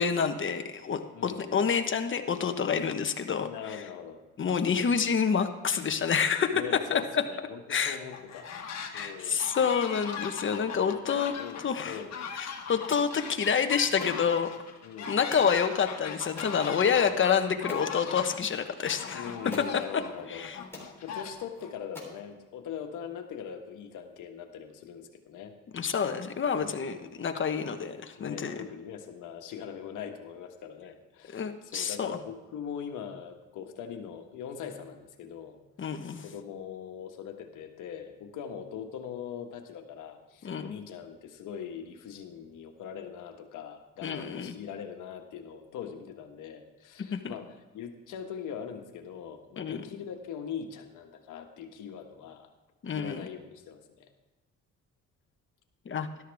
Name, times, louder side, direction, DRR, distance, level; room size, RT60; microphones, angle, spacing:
voice 1, 0.0-3.8 4.4-6.6 6.9-7.0 7.7-8.0 8.9-11.3 11.6-12.0 12.7-14.5 15.1-19.2 20.3-20.5 25.7-28.6 31.3-32.2 35.8-36.2 40.4-40.8 44.0-44.5 47.1-47.3 49.6-49.8 52.8-53.3 55.9-56.1, left 6 dB, 40° left, 7 dB, 1.1 m, -28 dB
voice 2, 1.1-1.7 3.4-4.2 6.5-8.5 8.9-9.4 10.9-12.1 14.8-15.2 16.9-17.4 19.1-20.4 20.7-25.5 26.6-27.2 28.2-35.6 36.2-52.5 52.9-54.1, left 8 dB, 85° left, 5 dB, 1.4 m, -41 dB
sound 1, 8.1-9.1 9.4-21.7, left 6 dB, 60° left, 1.7 m, -39 dB
sound 2, 12.9-13.1 14.0-14.2 15.3-15.6 16.4-16.6 17.2-17.3 17.7-17.9 19.0-19.1 19.5-19.8 20.4-20.5 20.7-20.9 21.5-21.6 22.0-22.2, left 2 dB, 10° left, 3.7 m, -43 dB
13.0 x 12.0 x 3.5 m, 1.2 s
cardioid pair, 90°, 30 cm